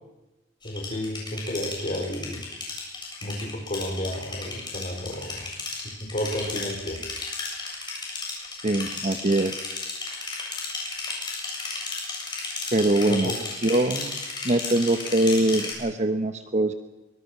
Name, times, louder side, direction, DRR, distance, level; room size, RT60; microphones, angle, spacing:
voice 1, 0.6-2.4 3.2-5.5 6.0-7.0 13.1-13.3, equal, 40° left, 4 dB, 4.4 m, -31 dB
sound 1, 0.6-15.7, left 3 dB, 25° left, 7.5 m, -34 dB
voice 2, 8.6-9.6 12.7-13.3 13.6-14.2 14.4-16.7, right 1 dB, 40° right, 8 dB, 1.0 m, -23 dB
24.0 x 23.5 x 6.0 m, 1.0 s
head